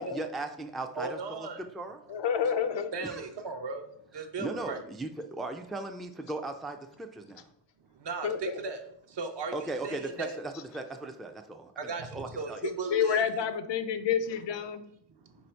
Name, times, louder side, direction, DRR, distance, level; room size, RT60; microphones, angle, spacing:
voice 1, 0.0-1.5 1.7-2.0 3.0-3.3 4.4-7.5 9.5-12.6, right 2 dB, ahead, 5 dB, 0.3 m, -38 dB
voice 2, 0.9-1.6 2.4-2.5 2.9-3.8 4.1-4.8 8.0-10.4 11.8-13.2, right 4 dB, 60° right, 5 dB, 0.8 m, -37 dB
voice 3, 2.1-2.9 8.2-8.5 12.9-14.8, left 7 dB, 65° left, 10 dB, 0.6 m, -28 dB
4.0 x 2.7 x 4.4 m, 0.71 s
cardioid pair, 60°, 46 cm